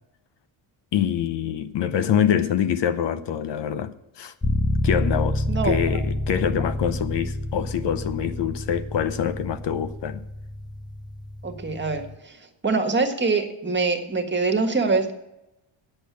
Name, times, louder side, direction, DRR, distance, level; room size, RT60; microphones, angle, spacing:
voice 1, 0.9-4.3 4.8-10.2, left 9 dB, 60° left, 0.8 m, -25 dB
sound 1, 4.4-12.2, left 1 dB, 10° left, 0.3 m, -28 dB
voice 2, 5.5-6.0 11.4-12.4 12.6-15.1, right 4 dB, 20° right, 1.5 m, -24 dB
8.7 x 8.0 x 8.3 m
cardioid pair, 120°, 48 cm